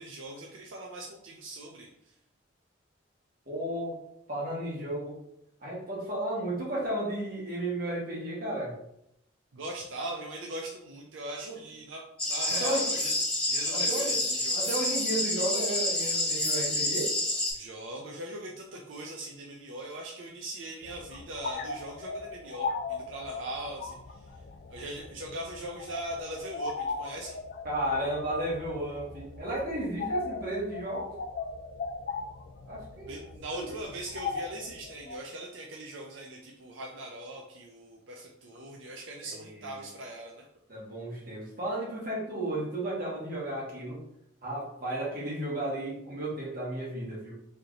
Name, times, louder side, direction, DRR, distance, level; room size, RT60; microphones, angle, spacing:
voice 1, 0.0-2.1 9.5-13.1 13.5-14.9 17.5-24.3 24.7-27.4 33.1-40.5, right 1 dB, 80° right, -1 dB, 0.5 m, -40 dB
voice 2, 3.5-4.0 4.3-5.2 5.6-8.7 11.4-11.6 12.5-13.0 13.7-14.2 14.5-17.1 27.6-31.1 32.6-33.1 33.5-33.7 39.2-39.7 40.7-44.0 44.4-47.3, right 1 dB, 45° right, -5 dB, 1.4 m, -33 dB
sound 1, 12.2-17.5, left 1 dB, 5° left, 1.2 m, -29 dB
sound 2, 20.8-35.2, left 4 dB, 55° left, 0.3 m, -38 dB
3.3 x 2.8 x 3.8 m, 0.78 s
head